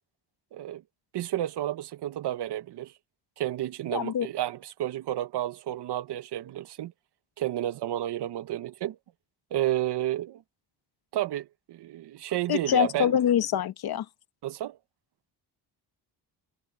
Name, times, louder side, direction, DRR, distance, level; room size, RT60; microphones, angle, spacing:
voice 1, 0.5-0.8 1.1-2.9 3.4-6.9 7.4-9.0 9.5-10.4 11.1-13.2 14.4-14.8, right 13 dB, 70° right, 0.9 m, -31 dB
voice 2, 3.9-4.3 12.5-14.0, left 9 dB, 60° left, 1.2 m, -25 dB
cardioid pair, 145°, 43 cm